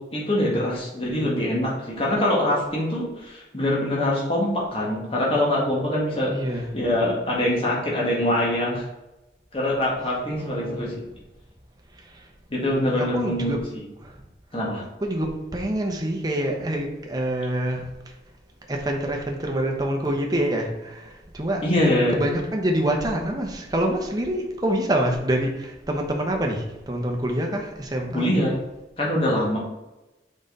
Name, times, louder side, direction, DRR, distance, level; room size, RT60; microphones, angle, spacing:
voice 1, 0.0-6.4 6.7-8.8 9.5-10.9 12.5-13.6 14.5-14.8 21.6-22.2 28.1-28.6 29.0-29.6, left 1 dB, 30° left, -4 dB, 1.8 m, -24 dB
voice 2, 6.3-6.7 10.4-10.8 11.9-12.3 12.9-13.6 14.0-14.2 15.0-18.1 18.7-21.6 22.1-28.3, right 1 dB, 20° right, 1 dB, 0.9 m, -26 dB
6.2 x 5.1 x 4.0 m, 1.0 s
head